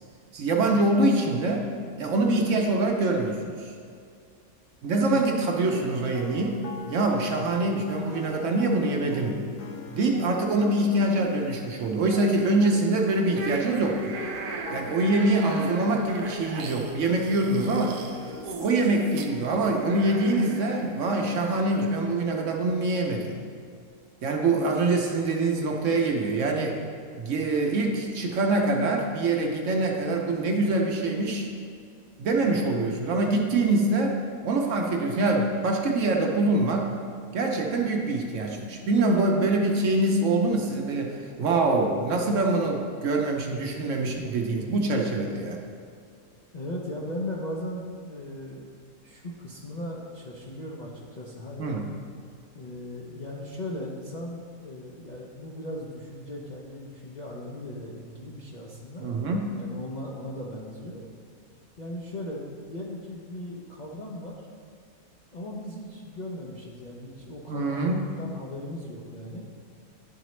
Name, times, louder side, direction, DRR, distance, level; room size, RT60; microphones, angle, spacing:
voice 1, 0.3-1.7 2.0-3.7 4.8-6.6 6.9-9.4 9.9-14.1 14.7-18.0 18.6-23.4 24.2-26.8 27.2-31.5 32.2-34.2 34.4-36.9 37.3-45.6 51.6-51.8 59.0-59.6 67.5-68.0, right 2 dB, 60° right, 1 dB, 0.9 m, -24 dB
sound 1, 5.6-21.6, left 4 dB, 80° left, 1.2 m, -42 dB
Hercules Heracles Squirrel Fictional Sound, 13.3-22.5, right 4 dB, 85° right, 1.1 m, -39 dB
voice 2, 46.5-48.7 49.0-51.8 52.5-59.1 59.6-61.0 61.8-64.5 65.3-69.4, left 1 dB, 50° left, -4 dB, 0.5 m, -38 dB
11.0 x 4.0 x 3.1 m, 2.2 s
omnidirectional pair, 1.6 m